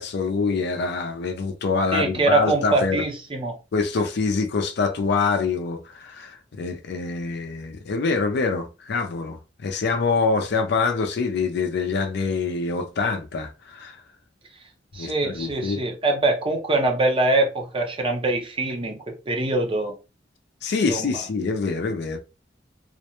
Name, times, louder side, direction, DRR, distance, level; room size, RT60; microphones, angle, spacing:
voice 1, 0.0-3.0 3.7-14.0 15.0-15.8 20.6-22.2, left 4 dB, 65° left, 0.4 m, -25 dB
voice 2, 1.9-3.6 14.9-20.0 20.9-21.2, right 2 dB, 30° right, 0.6 m, -23 dB
2.4 x 2.1 x 2.9 m
head